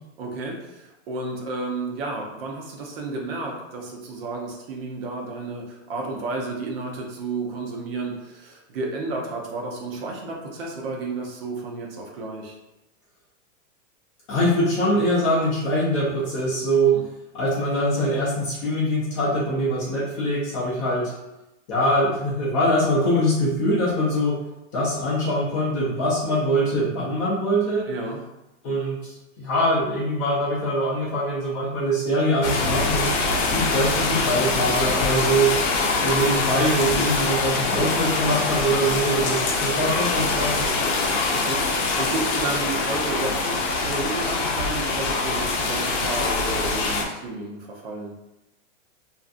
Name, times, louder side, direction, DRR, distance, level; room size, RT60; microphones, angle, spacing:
voice 1, 0.2-12.6 16.9-17.0 27.9-28.2 41.3-48.1, right 3 dB, 50° right, 0 dB, 0.6 m, -32 dB
voice 2, 14.3-17.0 17.3-21.1 21.7-24.4 24.7-27.9 28.6-33.1 33.5-35.5 35.9-41.1, equal, 25° left, -6 dB, 0.4 m, -23 dB
sound 1, 32.4-47.0, left 3 dB, 70° left, 0.6 m, -24 dB
2.6 x 2.3 x 2.4 m, 0.97 s
supercardioid pair, 155°, 38 cm